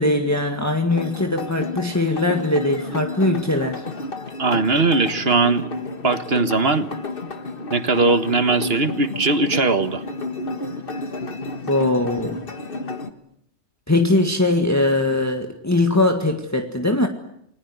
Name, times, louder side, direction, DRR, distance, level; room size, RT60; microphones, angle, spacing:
voice 1, 0.0-3.8 11.7-12.4 13.9-17.1, left 2 dB, 15° left, 4 dB, 1.8 m, -21 dB
sound 1, 0.9-13.1, left 3 dB, 50° left, 1.8 m, -31 dB
voice 2, 4.4-5.7 6.0-6.9 7.7-10.0, right 3 dB, 55° right, 10 dB, 1.8 m, -19 dB
29.5 x 20.0 x 9.5 m, 0.76 s
omnidirectional pair, 1.2 m